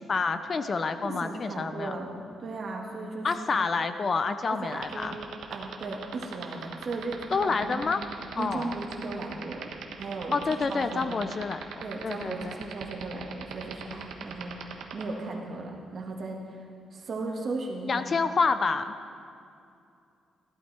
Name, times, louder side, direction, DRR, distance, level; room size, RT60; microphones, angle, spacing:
voice 1, 0.1-2.0 3.2-5.2 7.3-8.0 8.4-8.7 10.3-11.7 12.0-12.6 17.9-18.9, left 4 dB, 35° left, 10 dB, 0.5 m, -28 dB
voice 2, 1.0-3.6 4.5-5.2 5.5-7.8 8.3-9.7 10.0-11.2 11.8-18.1, right 3 dB, 45° right, -1 dB, 2.0 m, -36 dB
sound 1, 4.7-15.0, right 8 dB, 90° right, 1.1 m, -38 dB
15.0 x 11.5 x 4.4 m, 2.5 s
cardioid pair, 130°, 0 cm